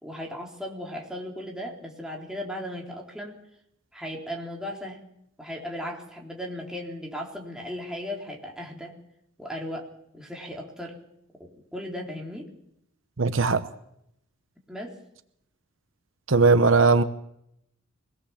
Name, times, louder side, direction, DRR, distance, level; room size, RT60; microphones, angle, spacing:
voice 1, 0.0-3.4 3.9-5.0 5.4-8.9 9.4-11.0 11.4-12.5 14.7-15.0, equal, 5° right, -1 dB, 3.8 m, -36 dB
voice 2, 13.2-13.6 16.3-17.0, right 4 dB, 70° right, 11 dB, 1.0 m, -19 dB
24.0 x 18.0 x 7.3 m, 0.77 s
head